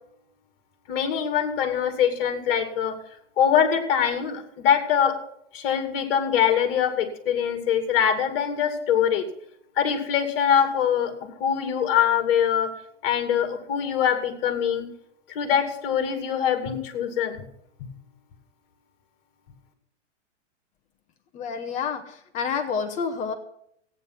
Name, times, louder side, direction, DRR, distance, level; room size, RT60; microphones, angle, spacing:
voice 1, 0.9-3.0 3.4-5.1 5.5-9.3 9.8-11.1 11.4-12.7 13.0-14.9 15.3-17.4, left 8 dB, 50° left, 7 dB, 2.6 m, -23 dB
voice 2, 21.3-23.3, left 6 dB, 20° left, 7 dB, 0.9 m, -29 dB
15.0 x 9.3 x 6.0 m, 0.73 s
hypercardioid pair, 160°, 37 cm